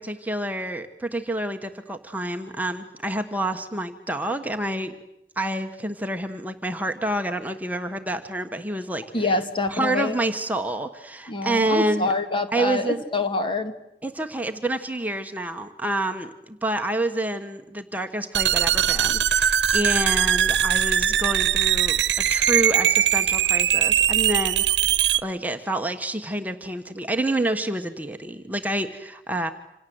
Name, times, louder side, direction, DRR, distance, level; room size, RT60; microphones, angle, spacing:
voice 1, 0.0-4.9 5.4-9.4 9.7-12.1 12.5-13.0 14.0-24.9 25.2-29.5, right 1 dB, 10° right, 5 dB, 1.3 m, -28 dB
voice 2, 9.1-10.1 11.3-13.7, left 3 dB, 30° left, 7 dB, 2.1 m, -26 dB
sound 1, 18.3-25.2, right 10 dB, 85° right, 1.0 m, -21 dB
27.5 x 27.0 x 7.9 m, 0.85 s
head